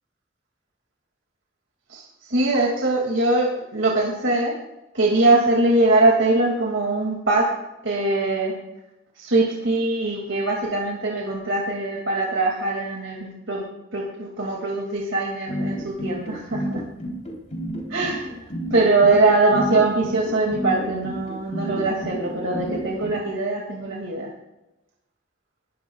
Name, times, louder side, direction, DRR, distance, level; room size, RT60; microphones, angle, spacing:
voice 1, 2.3-4.5 4.9-7.5 7.8-8.5 9.2-13.6 13.9-16.8 17.9-18.5 18.7-24.3, right 2 dB, 70° right, -1 dB, 2.4 m, -22 dB
sound 1, 15.5-23.1, equal, 40° left, 3.6 m, -30 dB
20.5 x 13.0 x 2.4 m, 0.92 s
head